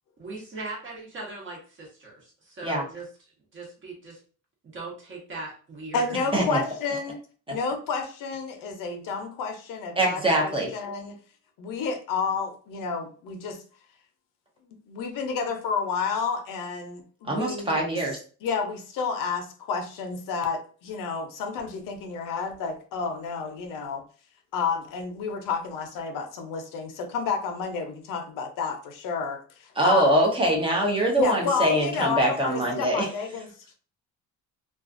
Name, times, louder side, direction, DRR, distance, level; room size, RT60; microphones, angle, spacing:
voice 1, 0.2-3.1 3.5-4.2 4.6-6.7, right 3 dB, 40° right, -2 dB, 1.0 m, -39 dB
voice 2, 5.9-7.2 7.5-11.2 11.6-13.6 14.9-17.8 18.4-24.0 24.5-30.1 31.2-33.5, left 5 dB, 90° left, 5 dB, 0.6 m, -30 dB
voice 3, 10.0-10.7 17.3-18.2 29.8-33.1, right 1 dB, 15° right, -1 dB, 0.5 m, -23 dB
2.4 x 2.3 x 2.4 m, 0.40 s
cardioid pair, 165°, 32 cm